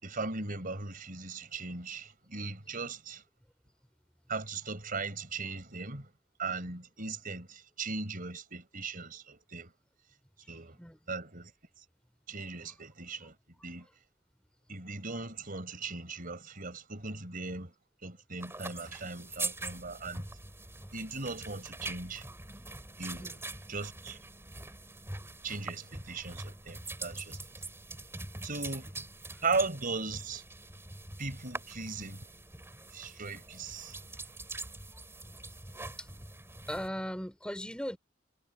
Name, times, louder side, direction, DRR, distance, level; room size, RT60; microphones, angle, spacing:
voice 1, 0.0-3.2 4.3-6.1 6.4-9.7 10.5-10.8 11.1-11.5 12.3-13.4 13.6-13.9 14.7-17.7 18.0-20.3 20.9-22.2 23.0-23.4 23.7-24.2 25.4-27.4 28.4-28.9 29.4-30.4 31.2-32.3 32.9-34.0, right 3 dB, 45° right, 4.9 m, -38 dB
voice 2, 10.4-11.0 12.7-12.8 23.2-23.4 25.4-25.5 29.3-29.4 31.0-31.1 32.7-32.9 34.0-34.1 35.2-35.6 36.0-36.2 36.5-38.0, equal, 5° left, 3.5 m, -40 dB
sound 1, 18.4-36.9, right 2 dB, 15° right, 4.7 m, -43 dB
head